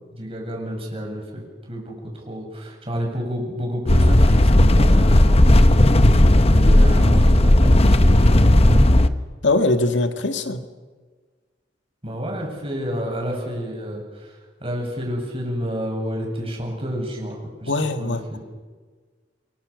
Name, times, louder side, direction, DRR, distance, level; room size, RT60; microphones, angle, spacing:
voice 1, 0.1-5.4 6.4-9.0 12.0-17.7 18.0-18.4, equal, 30° right, 0 dB, 7.9 m, -30 dB
sound 1, 3.9-9.1, left 1 dB, 35° left, 1.0 m, -14 dB
voice 2, 9.4-10.6 17.7-18.4, left 2 dB, 75° left, 7 dB, 1.9 m, -21 dB
29.0 x 23.5 x 6.5 m, 1.4 s
head